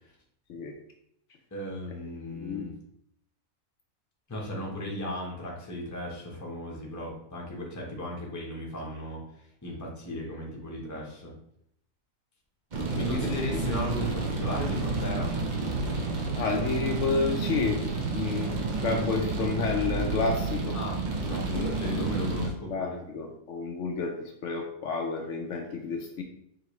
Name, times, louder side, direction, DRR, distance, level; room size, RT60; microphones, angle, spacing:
voice 1, 1.5-2.7 4.3-9.2 9.6-11.3 12.9-15.3 20.7-23.0, equal, 15° left, -2 dB, 0.7 m, -36 dB
voice 2, 2.3-2.7 12.8-13.6 16.3-18.5 18.8-20.8 21.5-26.2, left 4 dB, 70° left, 2 dB, 0.9 m, -31 dB
sound 1, 12.7-22.5, right 3 dB, 45° right, 0.7 m, -30 dB
4.9 x 2.8 x 3.0 m, 0.73 s
omnidirectional pair, 1.4 m